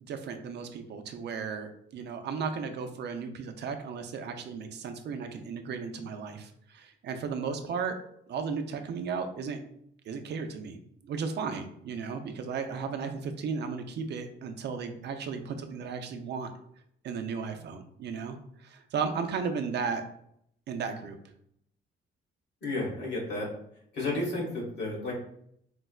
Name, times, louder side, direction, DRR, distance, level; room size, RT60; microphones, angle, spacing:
voice 1, 0.0-8.0 8.3-9.6 10.1-10.8 11.0-16.5 17.0-20.0 20.7-21.2, right 5 dB, 60° right, 6 dB, 0.4 m, -35 dB
voice 2, 22.6-23.5 23.9-25.1, left 2 dB, 60° left, -2 dB, 1.4 m, -32 dB
4.5 x 2.0 x 2.3 m, 0.70 s
cardioid pair, 90°, 20 cm